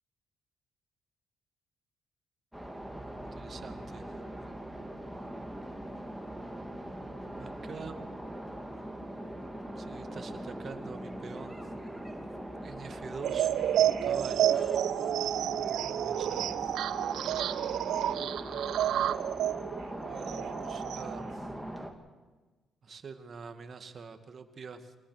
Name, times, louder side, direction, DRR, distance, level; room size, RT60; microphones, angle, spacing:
sound 1, 2.5-21.9, right 1 dB, ahead, 3.0 m, -41 dB
voice 1, 2.9-4.1 7.4-8.0 9.8-11.7 12.6-14.8 15.8-16.6 20.1-21.5 22.8-25.0, right 5 dB, 45° right, 8 dB, 2.2 m, -46 dB
sound 2, 13.2-21.3, right 11 dB, 75° right, 0.9 m, -30 dB
25.5 x 19.0 x 6.7 m, 1.2 s
cardioid pair, 90°, 0 cm